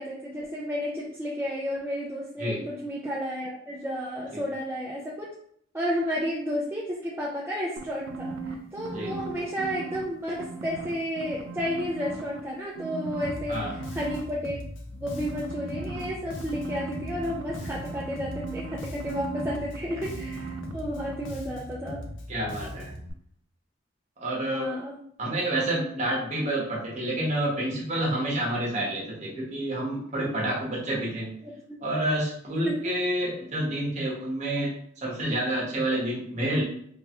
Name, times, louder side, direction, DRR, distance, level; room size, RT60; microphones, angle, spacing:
voice 1, 0.0-5.3 5.7-14.6 15.0-22.0 24.5-25.0 31.4-31.5 32.6-32.9, equal, 10° right, -5 dB, 0.3 m, -32 dB
sound 1, 7.8-10.0 10.4-12.4 12.7-14.2 15.1-20.7 21.0-21.1, right 4 dB, 80° right, 0.4 m, -38 dB
Bass guitar, 13.2-23.1, left 1 dB, 70° left, 0.5 m, -40 dB
voice 2, 22.3-22.9 24.2-24.7 25.2-31.3 31.8-34.7 35.0-36.6, right 1 dB, 35° right, -4 dB, 0.9 m, -28 dB
3.2 x 2.2 x 2.8 m, 0.66 s
head